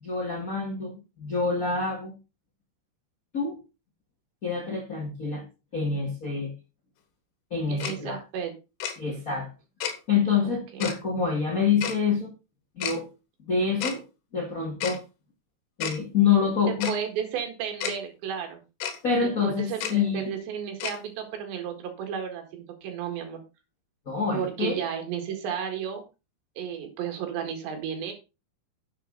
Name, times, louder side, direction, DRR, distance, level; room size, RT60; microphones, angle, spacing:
voice 1, 0.0-2.1 3.3-3.6 4.4-5.4 5.7-6.5 7.5-8.2 9.0-9.5 10.1-12.3 12.8-13.1 13.5-14.0 14.3-15.0 15.8-16.9 19.0-20.3 24.0-24.8, left 5 dB, 50° left, 0 dB, 1.0 m, -26 dB
voice 2, 7.7-8.5 10.4-10.8 16.7-18.6 19.2-23.4 24.3-26.0 26.6-28.1, right 8 dB, 80° right, 4 dB, 4.1 m, -33 dB
Tick-tock, 7.8-7.9 8.8-8.9 9.8-9.9 10.8-10.9 11.8-12.0 12.8-13.0 13.8-14.0 14.8-15.0 15.8-16.0 16.8-16.9 17.8-17.9 18.8-19.0 19.8-19.9 20.8-21.0, left 8 dB, 80° left, 3.4 m, -30 dB
10.5 x 7.5 x 3.9 m, 0.29 s
omnidirectional pair, 5.0 m